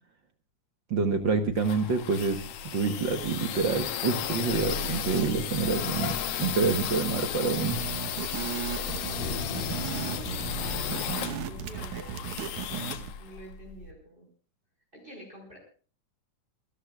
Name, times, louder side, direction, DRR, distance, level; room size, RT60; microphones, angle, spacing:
voice 1, 0.9-2.4 2.7-7.8, right 4 dB, 55° right, 7 dB, 1.4 m, -27 dB
sound 1, 1.2-13.9, left 9 dB, 90° left, 2.7 m, -35 dB
sound 2, 5.6-11.7, left 5 dB, 60° left, 2.1 m, -41 dB
sound 3, 7.7-13.1, right 9 dB, 80° right, 2.5 m, -36 dB
voice 2, 8.1-14.3 14.9-15.6, right 1 dB, 15° right, 0 dB, 5.1 m, -48 dB
28.5 x 13.0 x 2.4 m, 0.40 s
omnidirectional pair, 3.5 m